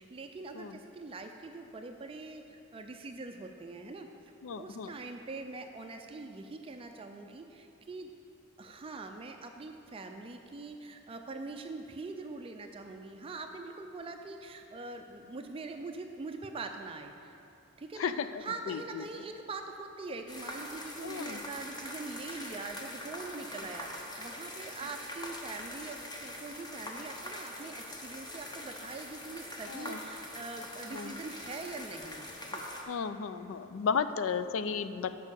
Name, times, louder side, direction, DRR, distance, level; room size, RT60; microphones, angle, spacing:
voice 1, 0.0-4.1 4.5-8.1 8.6-17.4 17.8-18.1 18.4-32.6, right 3 dB, 25° right, 5 dB, 0.4 m, -43 dB
voice 2, 4.4-4.9 18.0-19.0 21.0-21.4 29.7-30.0 30.9-31.1 32.9-35.1, left 6 dB, 70° left, 12 dB, 0.4 m, -34 dB
sound 1, 20.3-32.8, left 1 dB, 20° left, 0.9 m, -43 dB
8.2 x 5.3 x 6.7 m, 2.8 s
head